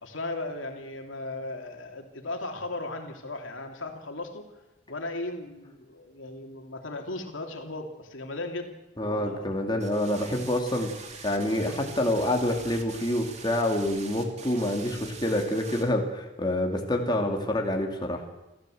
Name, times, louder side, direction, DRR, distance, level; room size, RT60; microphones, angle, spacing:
voice 1, 0.0-4.5 4.9-9.4, left 2 dB, 85° left, 3 dB, 3.1 m, -36 dB
voice 2, 9.0-18.2, left 1 dB, 25° left, 1 dB, 2.7 m, -27 dB
sound 1, 9.8-15.8, right 5 dB, 35° right, 2.8 m, -44 dB
29.0 x 14.0 x 7.9 m, 0.99 s
head